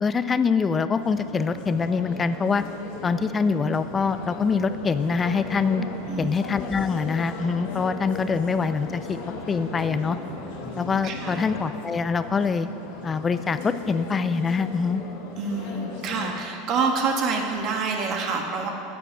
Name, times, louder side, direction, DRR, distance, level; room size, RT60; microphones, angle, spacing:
voice 1, 0.0-2.6 3.0-5.8 6.2-9.2 9.5-10.2 10.8-12.7 13.0-15.0, left 5 dB, 25° left, 12 dB, 0.4 m, -24 dB
sound 1, 1.0-16.4, left 4 dB, 70° left, 1.3 m, -37 dB
sound 2, 3.7-11.4, equal, 80° right, 2.7 m, -41 dB
voice 2, 6.0-6.4 11.0-11.4 15.4-18.7, right 4 dB, 50° right, 2 dB, 1.5 m, -27 dB
9.1 x 6.8 x 6.2 m, 2.7 s
hypercardioid pair, 100°, 0 cm